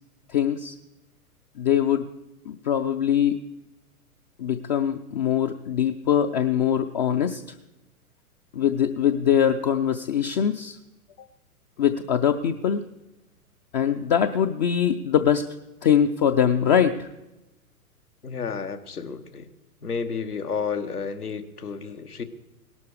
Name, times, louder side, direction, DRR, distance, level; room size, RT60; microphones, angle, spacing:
voice 1, 0.3-0.7 1.6-2.1 2.5-3.4 4.4-7.4 8.5-10.8 11.8-12.8 13.7-15.5 15.8-17.1, left 9 dB, 30° left, 7 dB, 0.5 m, -22 dB
voice 2, 18.2-19.5 19.8-22.2, left 5 dB, 80° left, 7 dB, 1.5 m, -31 dB
18.0 x 12.0 x 4.9 m, 0.99 s
figure-of-eight pair, 110°, 45 cm